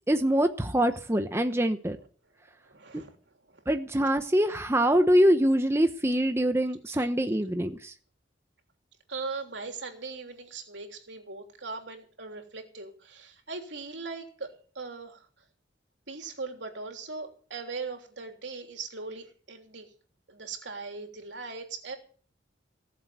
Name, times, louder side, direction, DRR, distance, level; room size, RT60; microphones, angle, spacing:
voice 1, 0.1-2.0 2.9-3.0 3.7-7.9, equal, 15° right, 7 dB, 0.9 m, -24 dB
voice 2, 2.6-3.2 3.5-3.6 7.0-7.1 9.1-15.3 16.1-19.9 20.3-22.0, right 4 dB, 75° right, 4 dB, 3.4 m, -39 dB
19.5 x 7.7 x 8.0 m, 0.44 s
head